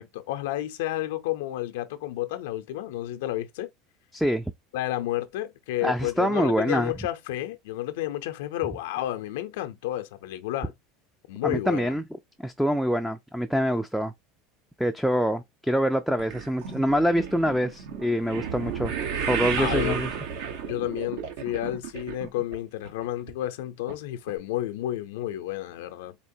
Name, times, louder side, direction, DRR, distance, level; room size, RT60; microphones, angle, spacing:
voice 1, 0.0-3.7 4.7-10.7 11.3-11.9 19.6-20.0 20.7-26.2, left 14 dB, 85° left, 0.5 m, -31 dB
voice 2, 4.1-4.4 5.8-6.9 11.4-12.0 12.4-14.1 14.8-18.9 19.3-20.1, equal, ahead, 0.3 m, -25 dB
sound 1, 16.2-22.6 22.8-23.3 23.9-24.0 24.3-24.4, right 7 dB, 75° right, 0.9 m, -32 dB
4.3 x 2.8 x 2.6 m
supercardioid pair, 135°, 0 cm